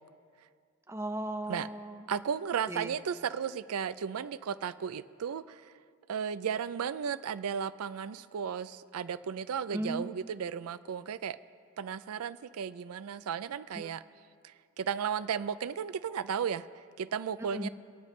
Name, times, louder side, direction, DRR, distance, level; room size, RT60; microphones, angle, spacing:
voice 1, 0.9-2.1 2.7-3.0 9.7-10.1 13.7-13.9 17.5-17.7, right 1 dB, 10° right, 6 dB, 0.5 m, -36 dB
voice 2, 2.1-5.7 6.1-11.4 11.8-14.0 14.4-17.7, right 7 dB, 90° right, 15 dB, 0.4 m, -35 dB
26.5 x 9.5 x 3.2 m, 2.2 s
head